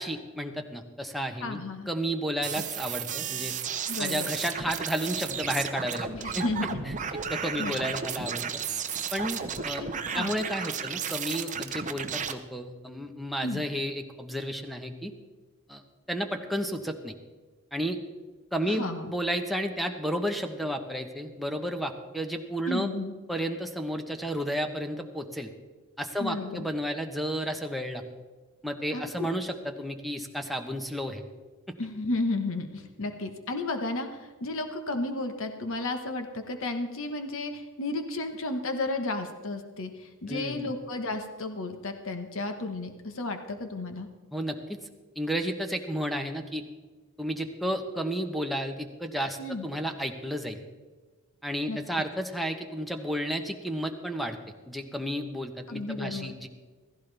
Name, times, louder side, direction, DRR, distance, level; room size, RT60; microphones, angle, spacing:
voice 1, 0.0-1.6 1.9-3.5 4.0-6.1 6.3-6.4 7.3-8.4 9.1-9.8 10.1-15.1 15.7-15.8 16.1-17.1 17.7-18.0 18.5-22.9 23.3-25.5 26.0-28.0 28.6-31.2 40.3-40.7 44.3-44.8 45.2-46.6 47.2-50.6 51.4-54.4 54.7-56.5, equal, ahead, 6 dB, 1.0 m, -32 dB
voice 2, 1.4-1.9 3.9-4.3 6.1-6.8 7.6-7.7 9.8-10.3 13.4-13.6 18.7-19.1 22.7-23.1 26.2-26.7 28.9-29.3 31.8-44.1 49.4-49.7 51.7-51.8 55.7-56.3, left 2 dB, 65° left, 6 dB, 1.3 m, -33 dB
sound 1, 2.4-12.3, right 7 dB, 35° right, 0.8 m, -33 dB
15.5 x 15.0 x 3.4 m, 1.3 s
head